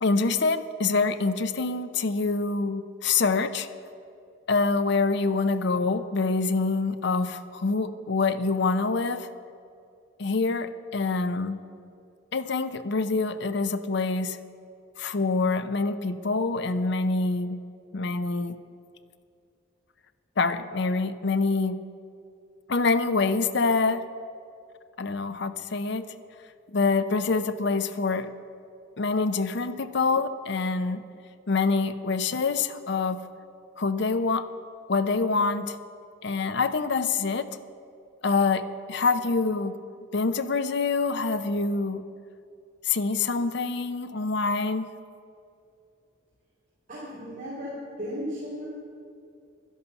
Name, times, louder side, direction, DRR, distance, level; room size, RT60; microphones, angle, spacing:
voice 1, 0.0-3.7 4.5-9.3 10.2-11.6 12.3-14.4 15.0-17.6 17.9-18.6 20.4-21.8 22.7-24.1 25.0-26.1 26.7-28.3 29.0-31.0 31.5-33.2 33.8-34.5 34.9-35.8 36.2-37.5 38.2-39.7 40.1-42.1 42.8-44.9, left 4 dB, 55° left, 12 dB, 0.6 m, -26 dB
voice 2, 46.9-48.6, equal, 40° right, -8 dB, 3.3 m, -35 dB
11.5 x 11.0 x 7.0 m, 2.5 s
head